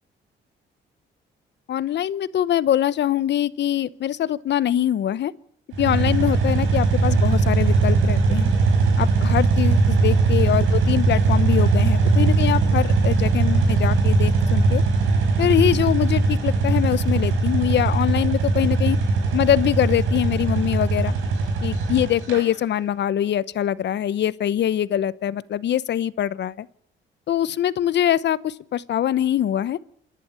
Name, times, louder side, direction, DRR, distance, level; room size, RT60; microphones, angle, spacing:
voice 1, 1.7-5.3 5.8-8.5 9.0-14.8 15.4-19.0 19.3-21.1 21.6-26.7 27.3-29.8, left 11 dB, 65° left, 18 dB, 0.9 m, -23 dB
sound 1, 5.7-22.4, right 3 dB, 85° right, 5.0 m, -20 dB
27.5 x 11.5 x 8.7 m, 0.67 s
cardioid pair, 90°, 20 cm